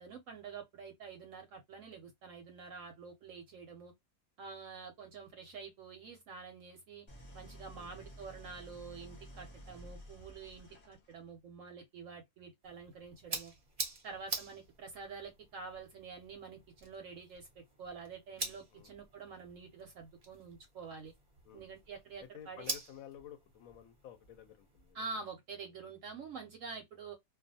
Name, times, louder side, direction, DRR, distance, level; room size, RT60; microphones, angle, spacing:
voice 1, 0.0-3.9 4.4-7.0 7.3-13.5 14.0-17.5 17.8-21.1 21.5-22.7 24.9-27.2, right 5 dB, 65° right, 0.8 m, -47 dB
Idling, 7.1-11.3, equal, 30° left, 0.9 m, -52 dB
sound 1, 12.6-24.9, right 2 dB, 35° right, 0.6 m, -46 dB
voice 2, 18.7-19.3 21.4-21.7 22.3-25.0, left 9 dB, 70° left, 0.9 m, -53 dB
2.4 x 2.3 x 2.6 m
omnidirectional pair, 1.7 m